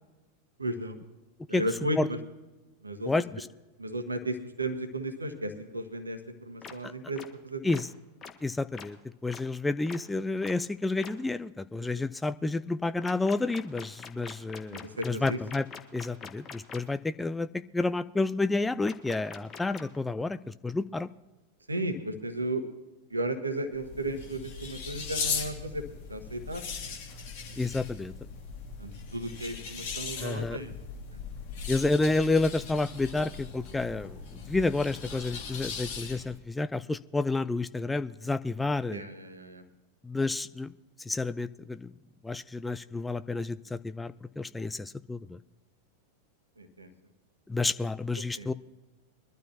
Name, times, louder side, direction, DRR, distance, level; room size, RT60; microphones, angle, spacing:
voice 1, 0.6-1.0 1.5-2.2 2.8-3.1 3.8-7.8 11.9-12.0 14.7-15.4 21.7-22.6 23.1-25.8 26.1-26.9 28.8-30.7 38.9-39.6 46.6-46.9 48.3-48.5, right 1 dB, 80° right, 9 dB, 1.3 m, -34 dB
voice 2, 3.0-3.5 6.8-6.9 7.6-7.9 8.4-9.0 9.2-15.7 15.9-17.5 17.7-21.1 27.6-28.1 30.2-30.6 31.7-34.2 34.5-39.0 40.0-40.7 41.1-41.9 42.2-45.4 47.5-48.5, left 3 dB, 10° left, 13 dB, 0.4 m, -30 dB
sound 1, 6.6-6.7 7.2-7.3 7.7-7.8 8.2-8.3 8.7-8.9 9.3-9.4 9.9-10.0 10.4-10.5 11.0-11.1 13.0-16.8 18.8-20.0, left 6 dB, 25° left, 1.2 m, -43 dB
sound 2, 23.7-36.4, left 5 dB, 50° left, 2.4 m, -39 dB
22.0 x 12.0 x 2.9 m, 1.1 s
figure-of-eight pair, 90°, 0 cm